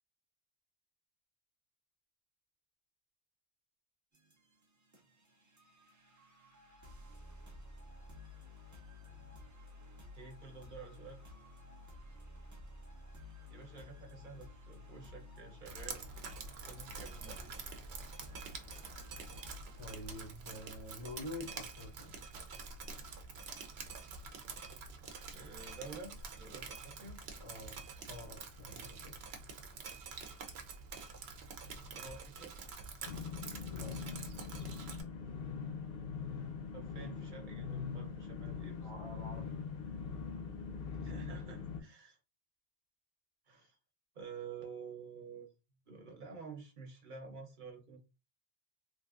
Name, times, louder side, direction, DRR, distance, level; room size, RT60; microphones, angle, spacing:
sound 1, 4.1-20.1, left 2 dB, 30° right, 0.3 m, -53 dB
voice 1, 10.1-11.2 13.5-16.0 16.6-17.5 25.3-27.2 31.6-32.5 36.7-38.9 40.9-42.2 43.5-43.8 44.1-45.5 45.9-48.0, right 5 dB, 55° right, 0.9 m, -50 dB
Drip, 15.7-35.0, right 4 dB, 85° right, 0.8 m, -47 dB
voice 2, 19.8-22.2 27.4-27.8 28.1-29.1 33.7-33.9 38.8-39.5, left 1 dB, 40° left, 0.5 m, -47 dB
sound 2, 33.1-41.8, left 6 dB, 70° left, 0.8 m, -42 dB
3.1 x 2.5 x 2.4 m
omnidirectional pair, 1.0 m